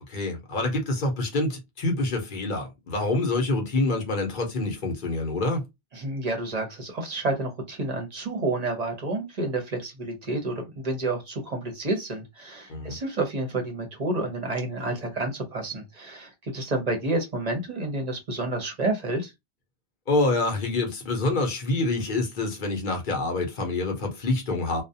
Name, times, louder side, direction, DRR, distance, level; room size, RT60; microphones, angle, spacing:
voice 1, 0.1-5.6 12.7-13.0 20.1-24.8, left 2 dB, 50° left, 0.8 m, -26 dB
voice 2, 5.9-19.3, right 2 dB, 40° right, 0.7 m, -29 dB
2.3 x 2.1 x 2.6 m
omnidirectional pair, 1.2 m